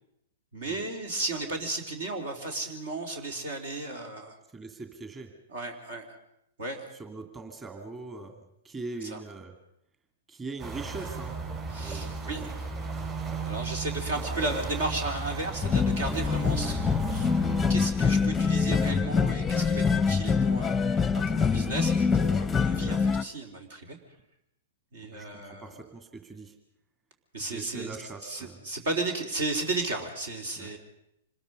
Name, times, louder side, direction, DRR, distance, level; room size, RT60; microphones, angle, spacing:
voice 1, 0.5-4.3 5.5-6.0 6.6-6.9 9.0-9.2 11.7-12.5 13.4-17.3 17.7-24.0 24.9-25.7 27.3-28.0 28.2-30.8, right 2 dB, 70° right, 4 dB, 3.8 m, -34 dB
voice 2, 4.5-5.3 6.9-9.5 10.3-11.3 11.8-12.3 25.1-26.5 27.4-28.6 30.6-30.7, right 3 dB, 20° right, 4 dB, 2.5 m, -41 dB
sound 1, 10.6-17.7, right 4 dB, 35° right, 5.8 m, -35 dB
sound 2, 15.6-23.2, left 5 dB, 10° left, 0.7 m, -25 dB
26.0 x 20.5 x 5.5 m, 0.80 s
hypercardioid pair, 115°, 0 cm